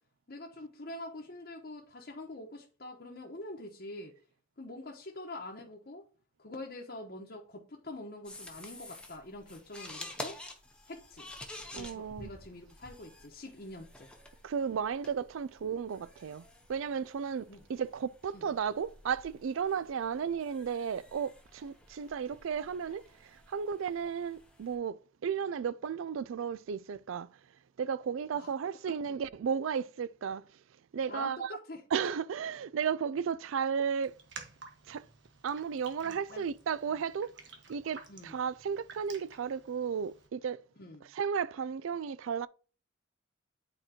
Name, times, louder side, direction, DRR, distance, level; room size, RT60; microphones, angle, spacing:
voice 1, 0.3-4.1 4.6-6.1 6.4-10.4 10.9-11.3 11.7-14.1 17.5-17.6 18.3-18.5 28.3-28.5 28.9-29.2 31.1-31.8 36.0-36.4 38.1-38.4 40.8-41.1, left 2 dB, 50° left, 1.0 m, -45 dB
sound 1, 8.2-24.8, left 1 dB, 5° left, 0.8 m, -50 dB
voice 2, 11.7-12.3 14.4-27.3 27.8-30.4 30.9-31.6 31.9-34.2 34.9-35.1 35.4-37.3 37.7-40.6 41.1-42.5, right 7 dB, 80° right, 0.4 m, -34 dB
Raindrop, 34.0-40.3, right 4 dB, 60° right, 1.3 m, -52 dB
8.9 x 4.4 x 2.9 m
head